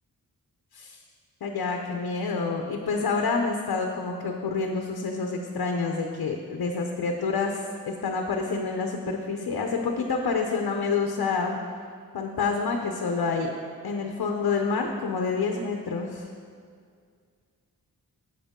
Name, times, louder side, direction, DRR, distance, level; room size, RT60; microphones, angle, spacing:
voice 1, 1.4-11.6 12.1-13.5 13.8-16.3, left 4 dB, 75° left, 3 dB, 0.8 m, -28 dB
10.5 x 7.7 x 3.7 m, 2.2 s
wide cardioid pair, 105°, 36 cm